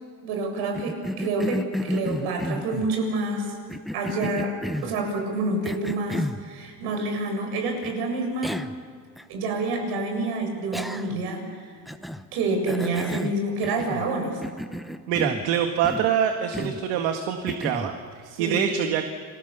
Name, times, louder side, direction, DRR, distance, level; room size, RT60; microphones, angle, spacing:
voice 1, 0.2-3.5 3.9-4.6 4.8-8.6 9.3-11.7 12.3-14.4 18.3-18.6, right 2 dB, 70° right, 3 dB, 7.3 m, -28 dB
Cough, 0.7-2.9 3.7-5.0 5.6-6.4 7.8-7.9 8.4-8.8 9.2-9.3 10.7-11.3 11.9-12.3 12.7-14.1 14.4-15.5 15.8-16.1 16.5-16.9 17.5-18.0, equal, ahead, 0.9 m, -32 dB
voice 2, 15.1-19.0, right 8 dB, 85° right, 5 dB, 2.0 m, -25 dB
30.0 x 23.0 x 7.0 m, 2.1 s
cardioid pair, 135°, 41 cm